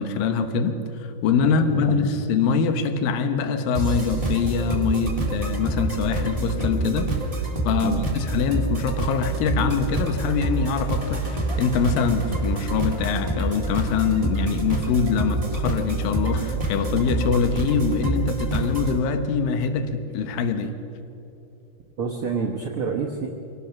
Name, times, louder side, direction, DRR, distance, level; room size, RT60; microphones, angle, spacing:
voice 1, 0.0-7.1 7.7-20.8, left 5 dB, 70° left, 8 dB, 2.8 m, -24 dB
voice 2, 1.3-2.0 7.8-8.0 22.0-23.3, right 5 dB, 65° right, 0 dB, 1.3 m, -28 dB
sound 1, 3.7-19.0, right 2 dB, 15° right, 1.6 m, -27 dB
26.5 x 18.0 x 6.0 m, 2.8 s
omnidirectional pair, 4.4 m